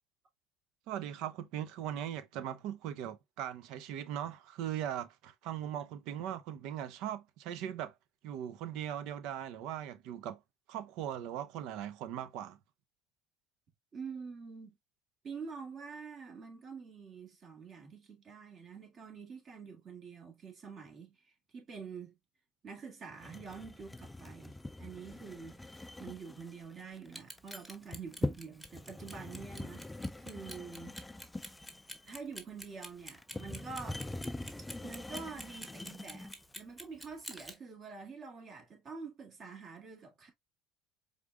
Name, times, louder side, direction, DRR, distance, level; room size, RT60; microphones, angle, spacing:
voice 1, 0.9-7.9 8.2-10.4 10.7-12.6, right 10 dB, 70° right, 0.6 m, -39 dB
voice 2, 13.9-14.8 15.2-22.2 22.6-31.0 32.0-34.0 34.8-40.3, right 5 dB, 45° right, 2.0 m, -47 dB
sound 1, 23.2-36.5, left 2 dB, 10° left, 0.3 m, -43 dB
Clock, 27.1-37.5, equal, 5° right, 1.2 m, -47 dB
4.9 x 3.7 x 2.2 m
supercardioid pair, 90°, 0 cm